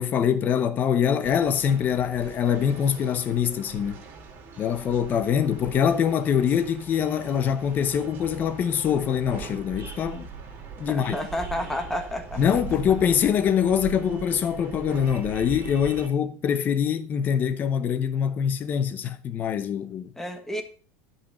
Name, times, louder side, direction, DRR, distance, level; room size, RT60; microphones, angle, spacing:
voice 1, 0.0-4.0 4.6-10.3 10.8-11.2 12.4-20.1, left 8 dB, 30° left, 0.9 m, -24 dB
sound 1, 1.2-16.1, right 5 dB, 35° right, 2.9 m, -41 dB
voice 2, 10.9-12.4 20.2-20.6, left 1 dB, 5° left, 1.5 m, -30 dB
10.0 x 5.8 x 5.6 m
supercardioid pair, 140°, 6 cm